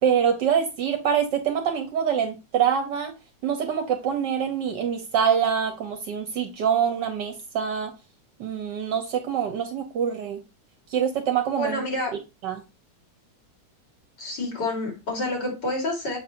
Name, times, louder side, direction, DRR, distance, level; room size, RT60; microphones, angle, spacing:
voice 1, 0.0-3.1 3.4-7.9 8.4-10.4 10.9-11.8 12.4-12.6, right 8 dB, 70° right, 1.4 m, -25 dB
voice 2, 11.6-12.1 14.2-16.2, left 1 dB, 65° left, 3.1 m, -28 dB
7.2 x 2.6 x 5.7 m
omnidirectional pair, 2.0 m